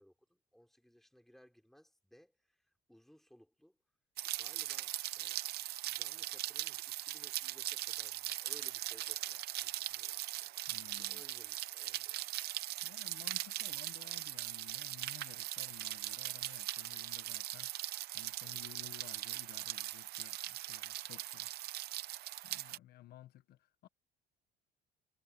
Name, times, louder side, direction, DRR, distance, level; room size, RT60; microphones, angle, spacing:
voice 1, 0.0-3.8 4.4-12.2 18.5-18.7, equal, ahead, 3.9 m, -63 dB
Rain, 4.2-22.8, right 15 dB, 70° right, 0.7 m, -40 dB
voice 2, 10.7-11.2 12.8-21.6 22.4-23.9, left 13 dB, 70° left, 1.1 m, -56 dB
cardioid pair, 110°, 17 cm